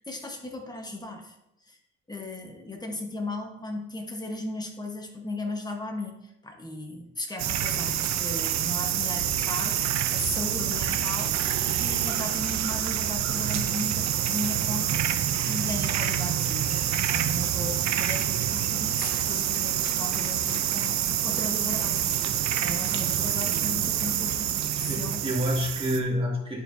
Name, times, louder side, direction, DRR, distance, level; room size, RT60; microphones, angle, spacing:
voice 1, 0.0-1.3 1.6-1.8 2.1-15.0 15.5-25.3, left 2 dB, 15° left, 2 dB, 1.2 m, -36 dB
sound 1, 7.4-26.0, right 10 dB, 65° right, 0.6 m, -27 dB
voice 2, 24.6-26.6, equal, 20° right, -2 dB, 2.2 m, -28 dB
11.0 x 4.6 x 2.7 m, 0.84 s
cardioid pair, 90°, 30 cm